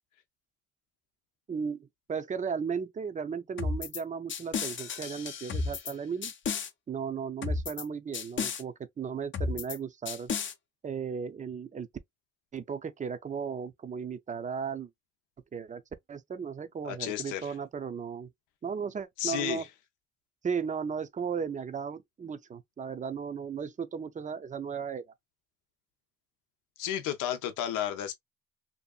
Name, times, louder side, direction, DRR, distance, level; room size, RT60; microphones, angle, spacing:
voice 1, 1.5-6.3 6.9-10.3 10.8-11.9 12.5-14.9 15.5-15.8 16.1-18.3 18.6-19.6 20.4-25.1, right 6 dB, 25° right, 0.5 m, -35 dB
sound 1, 3.6-4.0 4.3-5.9 6.2-6.7 7.4-7.8 8.1-8.6 9.3-9.8 10.1-10.5, left 4 dB, 40° left, 0.6 m, -33 dB
voice 2, 16.8-17.5 19.2-19.7 26.8-28.1, left 11 dB, 90° left, 0.6 m, -32 dB
2.8 x 2.4 x 2.3 m
cardioid pair, 90°, 30 cm